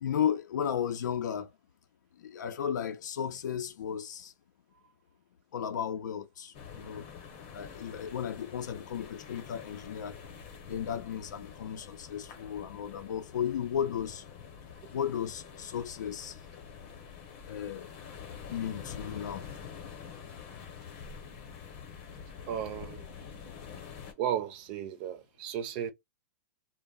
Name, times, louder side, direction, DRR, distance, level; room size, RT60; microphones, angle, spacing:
voice 1, 0.0-1.5 2.2-4.3 5.5-7.1 7.5-10.2 10.6-14.3 14.9-16.4 17.5-17.9 18.5-19.5, left 8 dB, 85° left, 0.5 m, -34 dB
sound 1, 6.5-24.1, left 7 dB, 35° left, 0.8 m, -47 dB
voice 2, 22.5-23.1 24.2-25.9, right 9 dB, 30° right, 0.4 m, -34 dB
2.2 x 2.0 x 3.5 m
supercardioid pair, 165°, 10 cm